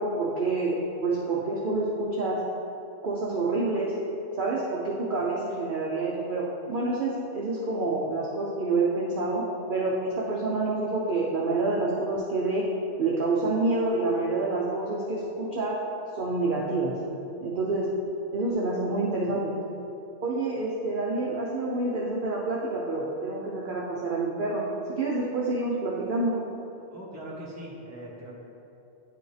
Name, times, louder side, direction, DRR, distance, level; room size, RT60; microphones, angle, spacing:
voice 1, 0.0-2.4 3.0-3.9 4.4-12.7 13.0-15.7 16.1-17.0 17.4-17.9 18.3-19.5 20.2-26.4, right 2 dB, 50° right, -5 dB, 0.8 m, -28 dB
voice 2, 26.9-28.4, right 1 dB, 15° right, -6 dB, 1.3 m, -41 dB
9.9 x 4.9 x 3.3 m, 2.8 s
omnidirectional pair, 1.3 m